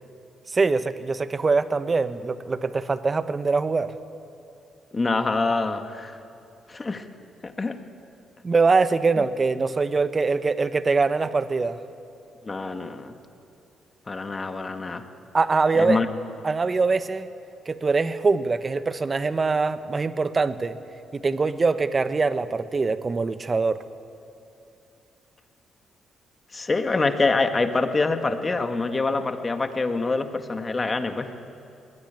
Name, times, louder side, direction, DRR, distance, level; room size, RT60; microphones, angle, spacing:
voice 1, 0.5-3.9 8.4-11.8 15.3-16.0 16.4-17.3 17.7-20.8 21.1-23.8, right 4 dB, 35° right, 12 dB, 1.2 m, -23 dB
voice 2, 4.9-6.2 6.7-7.1 7.4-7.8 9.2-9.3 12.4-13.2 14.1-15.1 15.7-16.1 26.5-31.3, left 3 dB, 30° left, 7 dB, 1.9 m, -25 dB
21.0 x 18.0 x 9.2 m, 2.7 s
hypercardioid pair, 50°, 0 cm